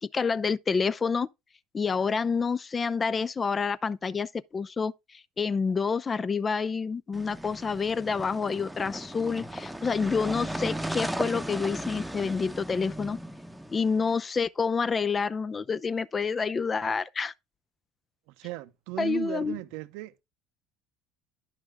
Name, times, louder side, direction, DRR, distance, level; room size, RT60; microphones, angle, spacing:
voice 1, 0.1-1.3 1.7-13.2 13.7-17.3 19.0-19.6, left 5 dB, 30° left, 0.5 m, -28 dB
sound 1, 7.1-14.1, right 1 dB, 5° right, 0.9 m, -36 dB
voice 2, 18.3-20.2, right 18 dB, 70° right, 0.7 m, -37 dB
10.5 x 5.8 x 3.4 m
hypercardioid pair, 70°, 0 cm